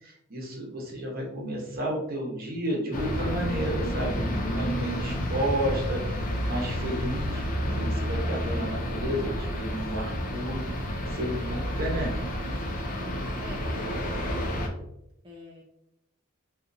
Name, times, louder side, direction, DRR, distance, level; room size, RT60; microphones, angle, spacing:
voice 1, 0.0-10.6 11.0-12.1, equal, 45° right, -1 dB, 1.0 m, -32 dB
sound 1, 2.9-14.7, equal, 40° left, 0.6 m, -30 dB
voice 2, 13.4-14.5 15.2-15.6, equal, 20° right, -3 dB, 0.4 m, -44 dB
4.3 x 2.5 x 2.6 m, 0.80 s
head